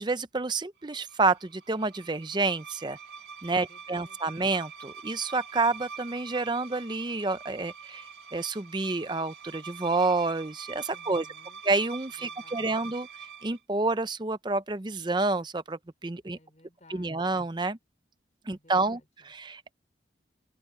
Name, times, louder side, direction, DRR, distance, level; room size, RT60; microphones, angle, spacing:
voice 1, 0.0-3.0 3.4-11.3 11.6-13.1 13.4-16.4 16.9-17.8 18.5-19.0 19.3-19.7, right 3 dB, 25° right, 0.6 m, -29 dB
sound 1, 0.9-13.6, right 6 dB, 65° right, 2.5 m, -45 dB
voice 2, 3.5-4.2 10.8-11.6 12.2-12.7 16.3-17.4 18.5-19.3, left 2 dB, 40° left, 5.3 m, -58 dB
open air
head